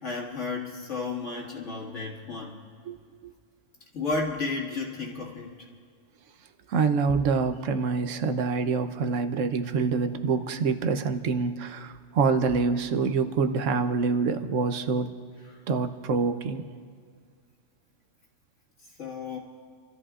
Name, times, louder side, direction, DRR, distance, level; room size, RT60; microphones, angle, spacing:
voice 1, 0.0-2.6 3.9-5.5 15.5-15.6 19.0-19.4, left 3 dB, 75° left, -4 dB, 2.3 m, -32 dB
voice 2, 6.7-15.1 15.7-16.6, right 5 dB, 85° right, 9 dB, 1.1 m, -26 dB
29.5 x 13.5 x 2.4 m, 2.1 s
omnidirectional pair, 1.3 m